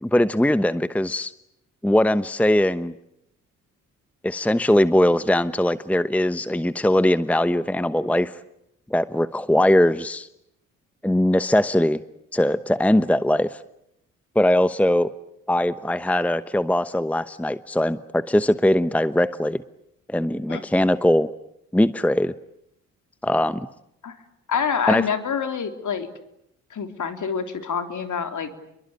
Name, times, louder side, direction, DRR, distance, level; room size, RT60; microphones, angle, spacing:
voice 1, 0.0-1.3 1.8-2.9 4.2-8.3 8.9-10.3 11.0-12.0 12.3-13.6 14.3-15.1 15.5-19.6 20.1-21.3 21.7-22.3 23.2-23.7 24.9-25.0, left 1 dB, 5° left, 14 dB, 1.0 m, -20 dB
voice 2, 24.5-26.1 26.7-28.5, left 6 dB, 50° left, 7 dB, 3.8 m, -26 dB
29.0 x 23.0 x 8.8 m, 0.80 s
hypercardioid pair, 50°, 38 cm